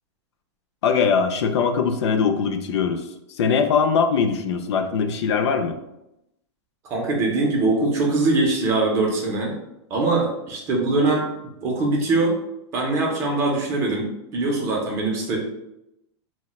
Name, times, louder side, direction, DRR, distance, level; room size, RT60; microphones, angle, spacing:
voice 1, 0.8-3.1 3.4-5.8, left 6 dB, 65° left, 6 dB, 0.4 m, -21 dB
voice 2, 6.8-9.5 9.9-11.3 11.6-12.4 12.7-15.4, right 2 dB, 20° right, -1 dB, 0.4 m, -22 dB
4.0 x 2.1 x 2.2 m, 0.86 s
supercardioid pair, 175°, 15 cm